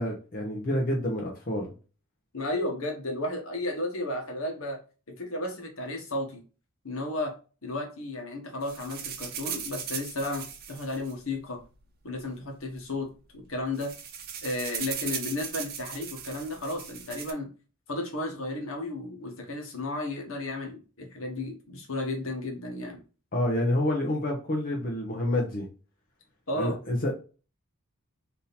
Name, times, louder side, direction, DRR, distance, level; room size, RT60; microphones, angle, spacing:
voice 1, 0.0-1.7 23.3-25.7 26.6-27.1, left 1 dB, 40° left, -1 dB, 0.9 m, -28 dB
voice 2, 2.3-4.8 5.1-6.4 6.8-7.3 7.6-11.6 12.0-13.1 13.3-13.9 14.4-17.5 17.9-23.0 26.5-26.8, left 2 dB, 65° left, 3 dB, 1.3 m, -33 dB
sound 1, 8.6-11.8 12.6-12.7 13.0-13.2 13.5-17.3, right 8 dB, 45° right, 0.7 m, -38 dB
3.7 x 2.8 x 4.0 m, 0.34 s
head